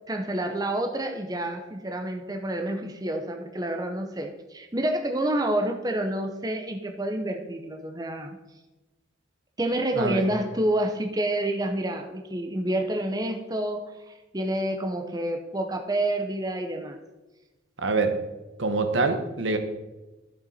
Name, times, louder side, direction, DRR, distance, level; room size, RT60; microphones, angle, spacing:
voice 1, 0.1-8.4 9.6-17.0, right 1 dB, 20° right, 4 dB, 0.7 m, -28 dB
voice 2, 9.9-10.3 17.8-18.2 18.6-19.6, right 3 dB, 80° right, 7 dB, 1.0 m, -25 dB
11.0 x 6.9 x 4.2 m, 1.1 s
head